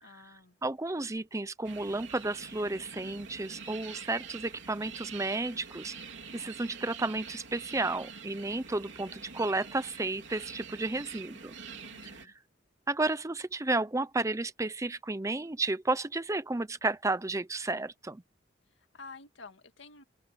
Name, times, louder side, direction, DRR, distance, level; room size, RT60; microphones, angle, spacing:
voice 1, 0.0-0.6 11.7-12.3 18.8-20.0, left 3 dB, 75° left, 1.9 m, -51 dB
voice 2, 0.6-5.9 6.3-11.6 12.9-18.2, right 2 dB, 15° right, 0.6 m, -32 dB
sound 1, 1.6-12.3, right 6 dB, 70° right, 3.6 m, -46 dB
open air
head